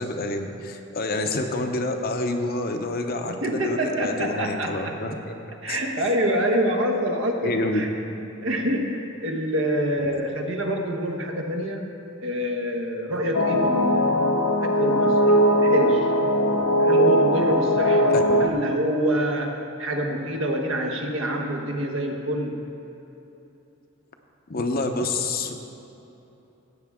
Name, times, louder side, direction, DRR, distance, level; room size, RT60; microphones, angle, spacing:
voice 1, 0.0-5.3 5.7-5.8 7.4-7.8 18.1-18.2 24.5-25.5, left 2 dB, 45° left, 5 dB, 0.8 m, -28 dB
voice 2, 3.3-4.9 5.6-7.9 8.4-11.8 12.2-14.3 14.6-16.1 16.8-22.7, equal, 65° right, 2 dB, 1.2 m, -26 dB
sound 1, 13.3-18.5, equal, 85° left, 0.7 m, -20 dB
16.0 x 8.4 x 3.6 m, 3.0 s
head